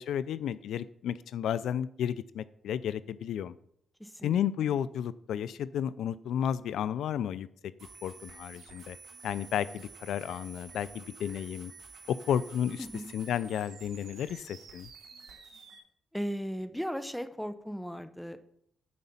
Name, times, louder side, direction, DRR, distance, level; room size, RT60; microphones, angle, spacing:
voice 1, 0.0-3.5 4.2-7.5 8.0-9.0 9.2-11.7 12.1-12.9 13.1-14.9, left 9 dB, 85° left, 17 dB, 0.4 m, -32 dB
voice 2, 4.0-4.4 12.8-13.1 16.1-18.4, equal, ahead, 11 dB, 0.8 m, -36 dB
sound 1, 7.8-15.8, right 5 dB, 85° right, 2.9 m, -51 dB
9.5 x 5.1 x 7.1 m, 0.69 s
cardioid pair, 100°, 0 cm